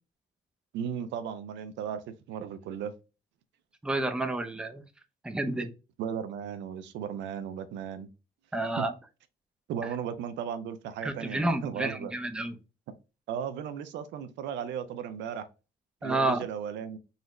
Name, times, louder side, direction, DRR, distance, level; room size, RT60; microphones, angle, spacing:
voice 1, 0.7-2.9 6.0-8.1 8.8-8.9 9.7-12.1 13.3-15.5 16.0-17.0, right 8 dB, 85° right, 0.5 m, -36 dB
voice 2, 3.8-4.8 5.2-5.7 8.5-8.9 11.0-12.6 16.0-16.4, right 2 dB, 5° right, 0.5 m, -30 dB
3.8 x 2.1 x 3.0 m
cardioid pair, 90°, 18 cm